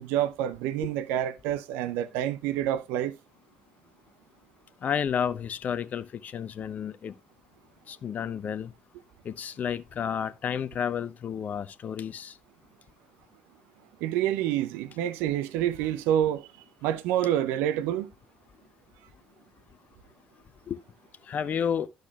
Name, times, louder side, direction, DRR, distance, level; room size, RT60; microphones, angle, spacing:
voice 1, 0.0-3.2 14.0-16.5 16.8-18.1, right 11 dB, 65° right, 0.5 m, -27 dB
voice 2, 4.8-7.1 7.9-8.7 9.3-12.3 20.7-20.8 21.3-21.9, left 8 dB, 45° left, 0.5 m, -31 dB
12.0 x 6.4 x 2.3 m
figure-of-eight pair, 50°, 4 cm